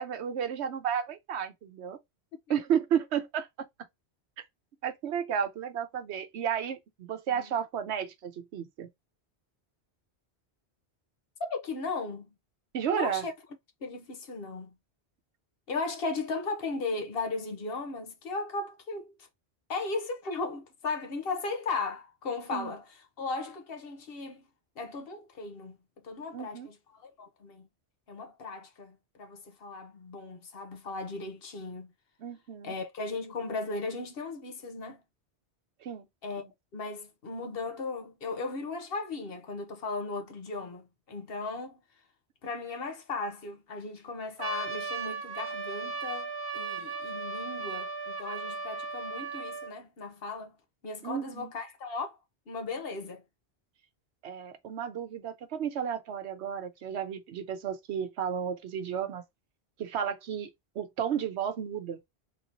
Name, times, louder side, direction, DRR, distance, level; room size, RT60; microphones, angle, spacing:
voice 1, 0.0-2.0 2.5-3.5 4.4-4.5 4.8-8.9 12.7-13.2 22.5-22.7 26.3-26.7 32.2-32.7 35.8-36.1 36.4-36.5 51.0-51.5 54.2-59.2 59.8-60.5 60.8-62.0, right 8 dB, 80° right, 1.0 m, -32 dB
voice 2, 11.4-12.3 12.9-13.3 13.8-14.7 15.7-19.1 19.7-24.5 24.8-25.8 26.0-27.7 28.1-31.9 32.6-35.0 36.2-41.8 42.4-50.5 50.8-52.2 52.5-53.2, left 3 dB, 65° left, 1.0 m, -36 dB
Trumpet, 44.4-49.7, right 4 dB, 30° right, 0.4 m, -36 dB
3.6 x 2.8 x 2.5 m
omnidirectional pair, 1.1 m